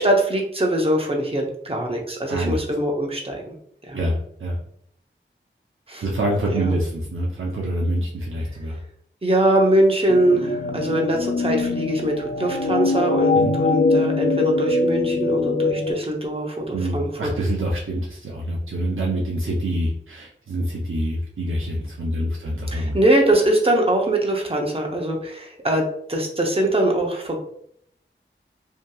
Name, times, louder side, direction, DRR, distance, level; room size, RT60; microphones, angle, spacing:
voice 1, 0.0-3.4 3.8-4.0 5.9-6.0 6.5-6.8 9.2-17.3 22.7-27.4, right 1 dB, 30° right, 0 dB, 0.7 m, -22 dB
voice 2, 3.9-4.6 6.0-8.8 13.3-13.5 16.7-23.0, right 1 dB, 90° right, -3 dB, 0.5 m, -26 dB
sound 1, 10.1-15.9, left 3 dB, 60° left, 0.5 m, -22 dB
2.7 x 2.6 x 2.2 m, 0.68 s
wide cardioid pair, 45°, 20 cm